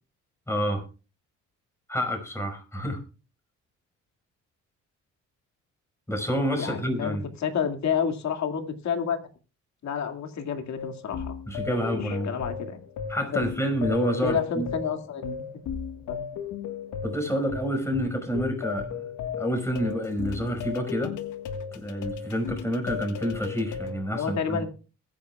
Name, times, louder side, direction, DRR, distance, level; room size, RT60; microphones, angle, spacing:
voice 1, 0.5-0.8 1.9-3.0 6.1-7.2 11.5-12.3 13.1-14.7 17.0-19.1 19.4-21.1 21.7-24.6, equal, 10° left, 5 dB, 5.3 m, -28 dB
voice 2, 6.5-9.2 9.8-11.3 12.0-12.8 13.3-13.4 14.2-15.4 16.1-16.2 24.1-24.7, left 7 dB, 65° left, 6 dB, 2.3 m, -29 dB
sound 1, 10.8-24.0, left 6 dB, 80° left, 1.6 m, -35 dB
21.0 x 9.8 x 2.3 m, 0.33 s
cardioid pair, 90°, 30 cm